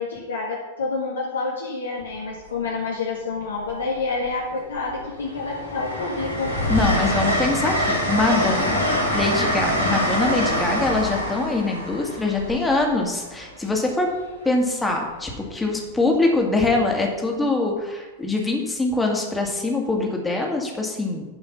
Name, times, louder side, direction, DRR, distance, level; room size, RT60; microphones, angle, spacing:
voice 1, 0.0-6.5, left 3 dB, 70° left, -4 dB, 1.8 m, -28 dB
Train, 2.0-2.3 3.6-4.3 4.7-13.5 15.1-15.3, equal, 90° left, 3.1 m, -25 dB
voice 2, 6.7-8.8 9.1-14.1 14.4-21.2, left 2 dB, 10° left, 1 dB, 2.1 m, -23 dB
11.0 x 5.5 x 5.9 m, 1.2 s
figure-of-eight pair, 90°, 0 cm